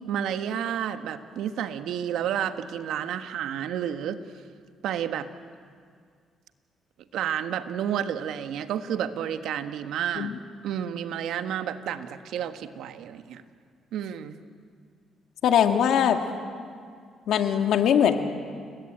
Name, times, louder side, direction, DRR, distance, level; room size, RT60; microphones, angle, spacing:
voice 1, 0.1-4.2 4.8-5.3 7.1-10.3 10.6-13.4 13.9-14.4, right 9 dB, 80° right, 9 dB, 1.5 m, -30 dB
voice 2, 15.4-16.2 17.3-18.2, left 9 dB, 75° left, 6 dB, 2.2 m, -21 dB
30.0 x 21.5 x 9.0 m, 2.1 s
cardioid pair, 90°, 0 cm